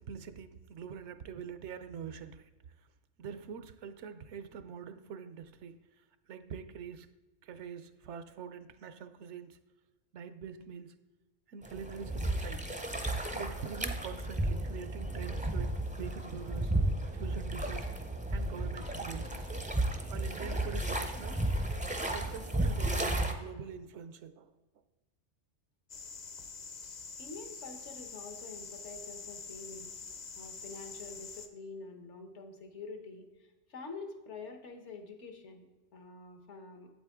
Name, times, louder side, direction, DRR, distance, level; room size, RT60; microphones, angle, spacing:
voice 1, 0.0-2.5 3.2-5.8 6.3-7.1 7.4-9.6 10.1-10.9 11.5-12.7 13.3-15.7 16.0-16.7 17.1-17.9 18.3-19.5 20.1-21.4 22.0-24.5, right 7 dB, 75° right, 0.9 m, -44 dB
sound 1, 11.6-23.3, right 1 dB, 10° right, 0.4 m, -33 dB
sound 2, 25.9-31.5, left 5 dB, 45° left, 0.7 m, -46 dB
voice 2, 27.2-29.9 30.3-35.7 35.9-36.9, left 4 dB, 75° left, 1.3 m, -47 dB
8.3 x 8.1 x 3.5 m
omnidirectional pair, 1.2 m